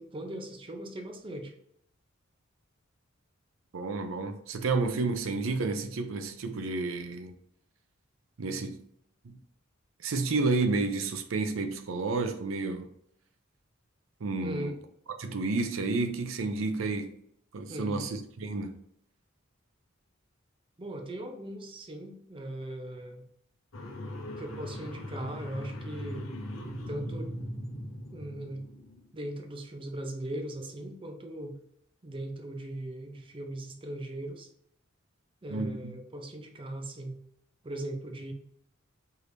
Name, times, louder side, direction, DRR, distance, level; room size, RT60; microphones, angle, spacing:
voice 1, 0.0-1.5 14.4-14.7 17.7-18.0 20.8-23.3 24.3-26.3 26.9-27.3 28.1-28.6 29.1-31.6 32.0-34.5 35.4-37.2 37.6-38.3, right 1 dB, 25° right, 0.6 m, -39 dB
voice 2, 3.7-7.3 8.4-8.8 9.2-9.4 10.0-12.9 14.2-14.7 15.2-17.1 17.5-18.8 35.5-35.9, right 3 dB, 85° right, 0.5 m, -31 dB
sound 1, 23.7-29.0, equal, 80° left, 0.8 m, -39 dB
4.7 x 3.3 x 2.6 m
head